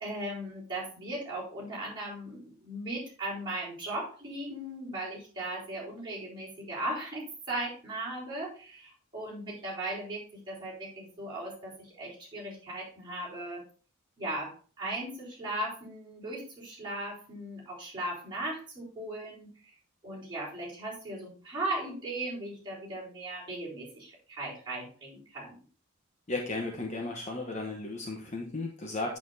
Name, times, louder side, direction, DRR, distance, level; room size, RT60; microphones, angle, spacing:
voice 1, 0.0-13.6 14.2-19.7 20.0-25.6, right 1 dB, 20° right, -8 dB, 4.2 m, -37 dB
voice 2, 26.3-29.2, left 2 dB, 30° left, 1 dB, 0.9 m, -35 dB
8.4 x 7.2 x 2.7 m, 0.40 s
head